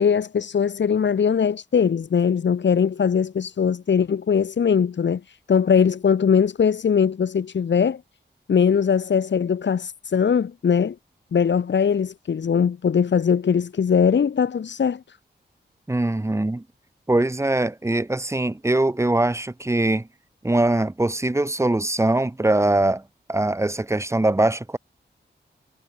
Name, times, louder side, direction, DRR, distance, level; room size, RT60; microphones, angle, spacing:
voice 1, 0.0-8.0 8.5-11.0 11.3-15.2, left 7 dB, 85° left, 2.4 m, -21 dB
voice 2, 15.9-16.6 17.1-20.1 20.4-23.0 23.3-24.8, right 2 dB, 15° right, 2.7 m, -22 dB
wide cardioid pair, 165°, 18 cm